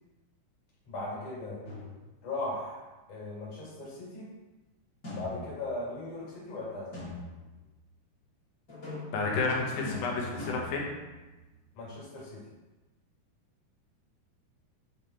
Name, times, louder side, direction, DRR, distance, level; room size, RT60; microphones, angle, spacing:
voice 1, 0.8-1.6 2.2-2.8 3.1-4.3 5.1-7.0 11.7-12.4, left 2 dB, 55° left, -7 dB, 3.5 m, -38 dB
sound 1, 1.6-2.3 5.0-5.9 6.9-7.6 8.7-11.6, left 2 dB, 40° left, 1.2 m, -41 dB
voice 2, 9.1-10.9, left 4 dB, 75° left, -1 dB, 2.7 m, -31 dB
7.4 x 3.5 x 4.3 m, 1.1 s
omnidirectional pair, 4.5 m